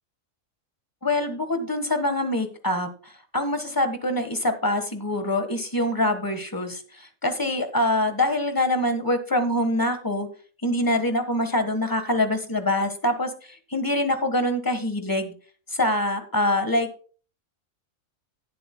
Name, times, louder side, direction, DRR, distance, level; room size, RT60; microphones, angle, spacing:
voice 1, 1.0-10.3 10.6-15.3 15.7-16.9, left 1 dB, 15° left, 9 dB, 1.3 m, -25 dB
17.5 x 7.6 x 2.2 m, 0.39 s
omnidirectional pair, 1.4 m